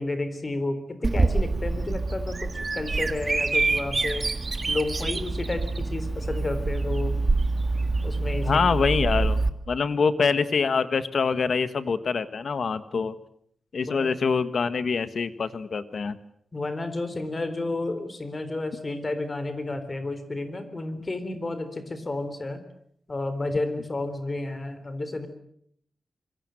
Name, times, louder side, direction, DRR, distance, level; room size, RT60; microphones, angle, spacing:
voice 1, 0.0-4.3 4.7-7.2 8.0-8.7 13.9-14.1 16.5-22.6 23.1-25.3, left 2 dB, 30° left, 11 dB, 3.7 m, -31 dB
Bird vocalization bird call bird song, 1.0-9.5, right 3 dB, 35° right, 1.7 m, -26 dB
voice 2, 8.4-9.4 9.7-13.1 13.7-16.1, left 5 dB, 60° left, 12 dB, 1.5 m, -25 dB
26.5 x 23.0 x 7.8 m, 0.68 s
wide cardioid pair, 155°, 0 cm